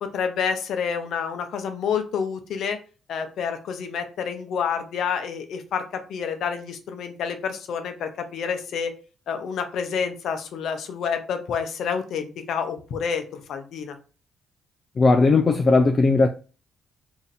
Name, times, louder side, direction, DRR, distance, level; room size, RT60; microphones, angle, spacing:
voice 1, 0.0-2.8 3.1-8.9 9.3-14.0, left 6 dB, 70° left, 0.7 m, -28 dB
voice 2, 15.0-16.3, left 3 dB, 40° left, 0.3 m, -17 dB
2.8 x 2.6 x 4.0 m
cardioid pair, 90°, 0 cm